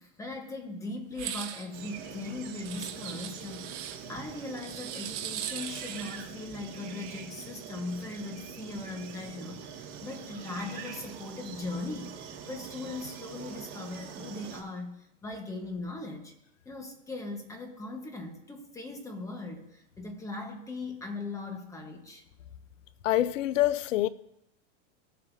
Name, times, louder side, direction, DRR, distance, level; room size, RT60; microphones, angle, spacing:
voice 1, 0.0-16.3 16.6-22.2, left 2 dB, 10° left, 1.0 m, -39 dB
sound 1, 1.1-1.7 2.6-4.0 4.6-6.3, right 10 dB, 70° right, 1.5 m, -39 dB
sound 2, 1.7-14.6, right 7 dB, 40° right, 1.8 m, -44 dB
voice 2, 23.0-24.1, left 14 dB, 80° left, 0.7 m, -25 dB
17.0 x 7.5 x 2.6 m
supercardioid pair, 155°, 38 cm